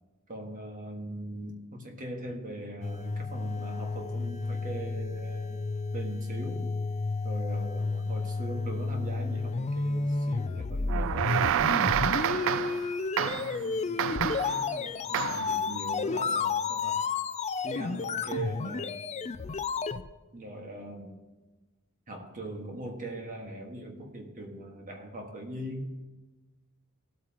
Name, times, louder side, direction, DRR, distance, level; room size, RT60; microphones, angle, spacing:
voice 1, 0.3-5.6 5.9-6.7 7.2-12.7 13.2-17.0 17.6-19.0 20.3-21.2 22.1-26.0, right 1 dB, 40° right, 2 dB, 1.7 m, -41 dB
sound 1, 2.8-20.1, left 4 dB, 30° left, 0.4 m, -31 dB
sound 2, 10.9-12.9 13.2-13.6 14.0-14.6 15.1-15.5, right 10 dB, 65° right, 0.3 m, -28 dB
17.5 x 8.5 x 3.0 m, 1.2 s
head